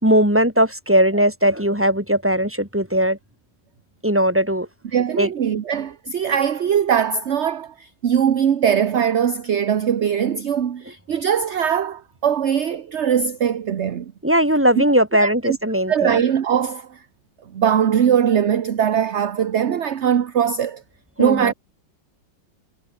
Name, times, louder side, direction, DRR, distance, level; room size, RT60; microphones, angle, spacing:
voice 1, 0.0-3.2 4.0-4.7 5.2-5.3 14.2-16.2 21.2-21.5, equal, 5° right, 5.0 m, -18 dB
voice 2, 4.9-14.1 14.8-14.9 15.2-15.6 15.9-16.9 17.5-20.8 21.2-21.5, right 8 dB, 45° right, 1.0 m, -21 dB
omnidirectional pair, 2.0 m